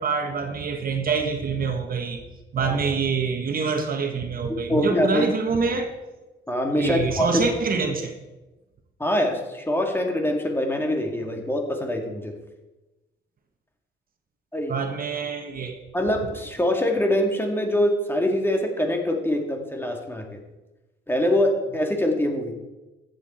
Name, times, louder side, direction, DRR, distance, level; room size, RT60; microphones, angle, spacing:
voice 1, 0.0-2.2 2.5-5.9 6.8-8.1 14.7-15.8, right 5 dB, 45° right, 5 dB, 1.4 m, -26 dB
voice 2, 4.5-5.3 6.5-7.5 9.0-12.3 14.5-14.8 15.9-20.4 21.1-22.5, left 1 dB, 10° left, 3 dB, 2.1 m, -24 dB
14.0 x 8.5 x 4.3 m, 1.1 s
cardioid pair, 90°, 20 cm